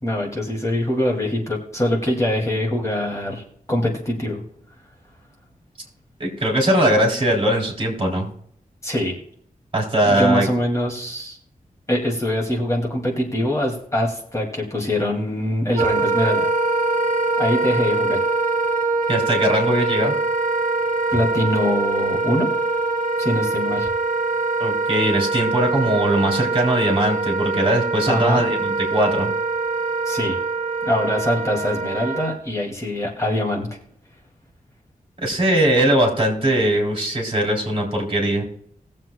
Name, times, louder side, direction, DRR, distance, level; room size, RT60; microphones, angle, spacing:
voice 1, 0.0-4.4 8.8-9.1 10.1-11.4 11.9-16.5 17.4-18.2 21.1-22.5 23.2-23.9 28.1-28.4 30.1-30.4 30.8-33.7, left 1 dB, 20° left, -1 dB, 2.4 m, -23 dB
voice 2, 6.2-8.3 9.7-10.5 19.1-20.1 24.6-29.3 35.2-38.4, right 1 dB, 40° right, -1 dB, 3.5 m, -20 dB
Wind instrument woodwind instrument, 15.8-32.3, right 3 dB, 65° right, 1.0 m, -23 dB
20.5 x 7.6 x 2.3 m, 0.68 s
wide cardioid pair, 130°, 14 cm